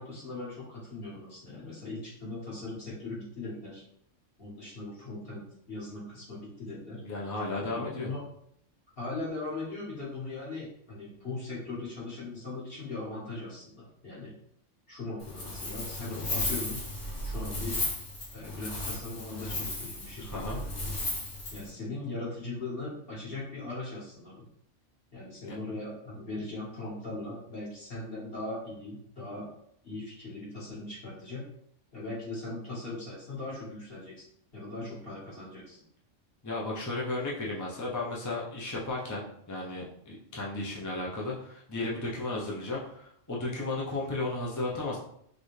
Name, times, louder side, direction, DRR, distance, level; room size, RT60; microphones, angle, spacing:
voice 1, 0.0-3.8 4.4-7.0 7.6-8.2 9.0-14.3 14.9-16.8 17.2-17.8 18.3-20.6 21.5-24.5 25.1-29.5 29.8-31.4 31.9-34.2 34.5-35.8, left 2 dB, 50° left, -7 dB, 2.1 m, -39 dB
voice 2, 7.0-8.1 20.2-20.6 25.4-25.6 36.4-45.0, left 2 dB, 20° left, -5 dB, 0.6 m, -34 dB
Wind, 15.2-21.7, left 1 dB, 80° left, 1.5 m, -35 dB
4.2 x 3.3 x 3.3 m, 0.70 s
omnidirectional pair, 1.3 m